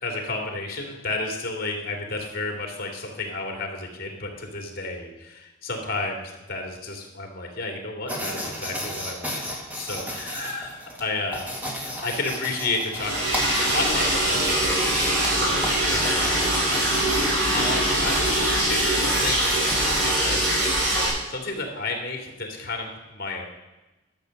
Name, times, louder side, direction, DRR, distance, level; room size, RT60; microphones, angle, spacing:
voice 1, 0.0-14.8 15.3-20.4 21.3-23.5, left 2 dB, 55° left, 2 dB, 2.6 m, -32 dB
sound 1, 8.1-20.2, equal, 10° right, 2.1 m, -35 dB
Liquid, 12.9-21.1, right 1 dB, 65° right, 5.3 m, -23 dB
12.5 x 7.3 x 6.5 m, 1.0 s
head